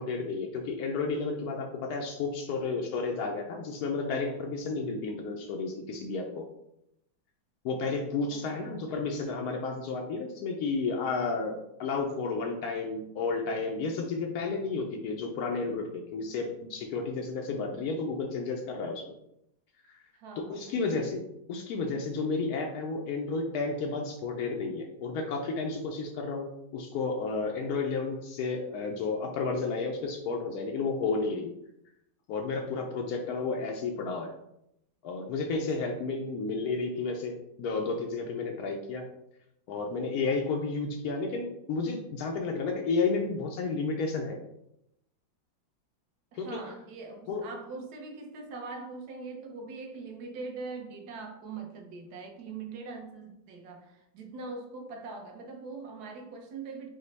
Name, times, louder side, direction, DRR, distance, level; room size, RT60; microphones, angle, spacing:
voice 1, 0.0-6.5 7.6-19.0 19.9-20.0 20.5-21.2 21.5-31.5 32.3-34.3 35.0-39.1 39.7-44.4 46.4-46.6 47.3-47.4, left 4 dB, 80° left, 1 dB, 0.8 m, -32 dB
voice 2, 8.3-8.8 20.1-21.0 46.3-56.9, right 4 dB, 65° right, 3 dB, 1.1 m, -42 dB
5.2 x 2.1 x 4.0 m, 0.81 s
omnidirectional pair, 2.1 m